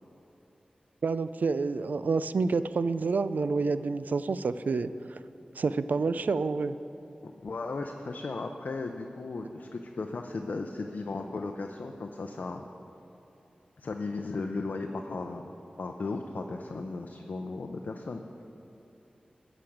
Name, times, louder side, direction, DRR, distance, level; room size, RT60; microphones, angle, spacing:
voice 1, 1.0-5.2 5.6-6.7, right 4 dB, 75° right, 13 dB, 0.3 m, -28 dB
voice 2, 7.2-12.7 13.8-15.5 15.8-18.2, left 3 dB, 75° left, 3 dB, 0.6 m, -36 dB
13.5 x 5.1 x 8.5 m, 2.8 s
wide cardioid pair, 90°, 3 cm